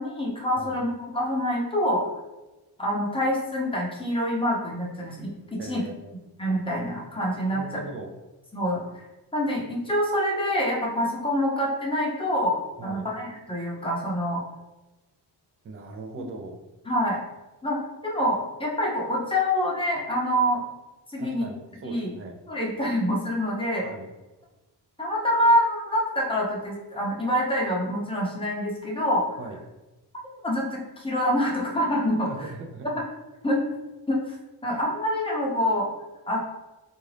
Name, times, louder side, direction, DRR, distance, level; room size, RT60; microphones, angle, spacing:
voice 1, 0.0-2.1 2.8-5.8 6.4-7.6 8.5-8.8 9.3-14.4 16.2-16.3 16.9-17.2 17.6-20.6 21.1-21.5 21.8-22.1 22.5-23.8 25.0-29.3 30.4-32.5 33.4-33.6 34.1-34.4 34.6-35.9 36.3-36.4, equal, 15° left, -3 dB, 0.7 m, -26 dB
voice 2, 5.6-6.1 7.5-8.1 12.8-13.1 15.6-16.6 21.2-22.4 23.8-24.1 29.4-29.6 32.2-32.9, right 3 dB, 35° right, 4 dB, 0.4 m, -39 dB
3.8 x 2.5 x 3.2 m, 1.1 s
wide cardioid pair, 135°, 42 cm